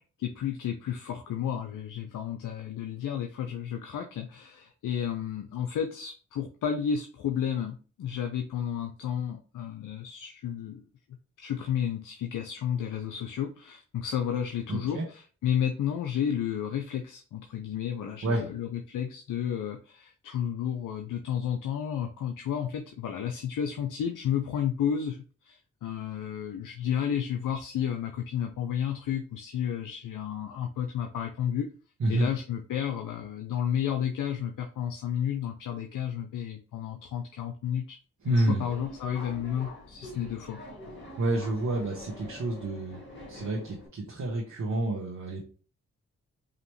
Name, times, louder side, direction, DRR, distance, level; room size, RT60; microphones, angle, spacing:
voice 1, 0.2-10.9 11.4-31.7 32.1-38.0 38.3-40.6, left 9 dB, 75° left, 4 dB, 0.6 m, -32 dB
voice 2, 14.7-15.1 18.2-18.4 32.0-32.3 38.2-38.7 41.2-43.0 43.3-45.4, right 2 dB, 60° right, -1 dB, 1.2 m, -29 dB
Subway metro underground, 38.2-43.9, left 1 dB, 35° left, 2.1 m, -45 dB
5.0 x 2.8 x 3.1 m, 0.37 s
supercardioid pair, 40°, 32 cm